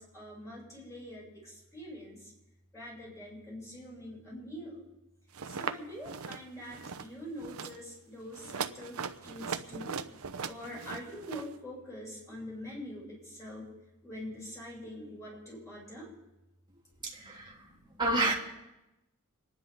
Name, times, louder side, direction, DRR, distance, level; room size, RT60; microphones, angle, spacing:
voice 1, 0.0-2.3 2.7-4.9 5.4-10.0 10.4-13.7 14.0-16.1 17.0-18.0, equal, 15° left, -6 dB, 7.2 m, -44 dB
sound 1, 5.3-5.8 6.0-6.4 6.7-7.1 7.4-7.8 8.3-11.5, right 6 dB, 75° right, 0.7 m, -39 dB
voice 2, 17.1-17.5 18.0-18.3, right 2 dB, 20° right, -3 dB, 2.9 m, -28 dB
27.0 x 10.5 x 3.8 m, 0.96 s
head